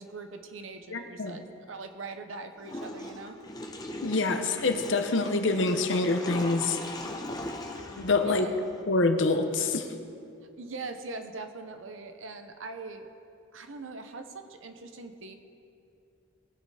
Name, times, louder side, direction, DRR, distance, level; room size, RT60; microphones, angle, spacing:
voice 1, 0.0-3.4 8.2-8.5 10.6-13.1 13.5-15.3, right 3 dB, 75° right, 7 dB, 0.9 m, -41 dB
voice 2, 0.9-1.3 4.0-6.8 8.0-8.5 8.9-9.9, left 3 dB, 65° left, 6 dB, 0.9 m, -26 dB
Water / Toilet flush, 2.6-8.8, left 1 dB, 20° left, 0.9 m, -39 dB
20.0 x 6.8 x 4.9 m, 2.6 s
head